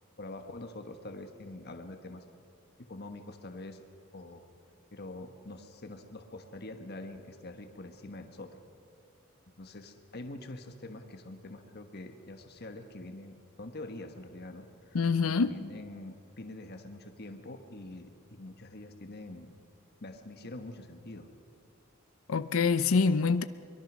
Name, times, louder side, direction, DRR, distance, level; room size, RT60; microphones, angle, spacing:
voice 1, 0.2-2.2 2.8-3.8 4.1-4.4 4.9-8.5 9.6-15.0 15.2-19.5 20.0-21.3, left 2 dB, 50° left, 6 dB, 1.3 m, -45 dB
voice 2, 14.9-15.5 22.3-23.4, left 4 dB, 70° left, 12 dB, 0.6 m, -25 dB
23.0 x 22.5 x 6.2 m, 2.4 s
head